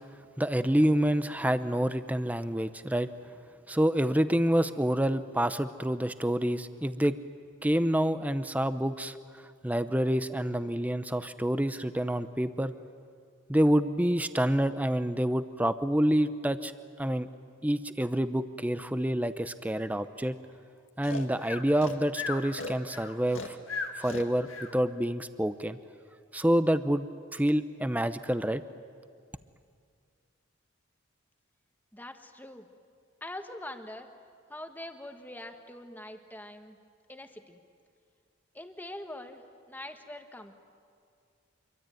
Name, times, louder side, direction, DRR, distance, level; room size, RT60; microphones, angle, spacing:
voice 1, 0.4-3.1 3.7-7.2 7.6-9.2 9.6-12.7 13.5-16.7 17.0-17.3 17.6-20.3 21.0-23.6 24.0-25.8 26.3-27.1 27.3-28.6, equal, 10° right, 11 dB, 0.8 m, -27 dB
Breathing, 21.0-24.7, left 4 dB, 75° left, 1.9 m, -37 dB
voice 2, 31.9-32.7 33.2-34.1 34.5-36.8 37.1-37.6 38.5-40.5, left 1 dB, 10° left, 6 dB, 1.5 m, -43 dB
26.0 x 24.0 x 9.3 m, 2.2 s
head